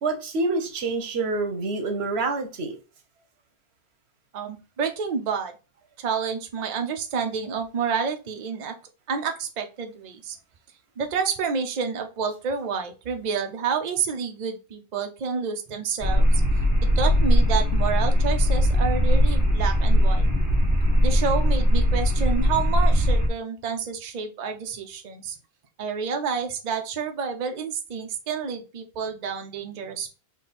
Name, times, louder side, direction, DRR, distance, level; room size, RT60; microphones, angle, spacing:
voice 1, 0.0-2.7, right 3 dB, 85° right, 1.1 m, -27 dB
voice 2, 4.3-5.5 6.0-8.7 9.1-10.4 11.0-16.4 17.0-20.3 21.0-25.4 25.8-30.1, right 6 dB, 50° right, 0.7 m, -29 dB
sound 1, 16.0-23.3, equal, 20° right, 0.9 m, -20 dB
3.7 x 2.8 x 4.0 m
omnidirectional pair, 1.1 m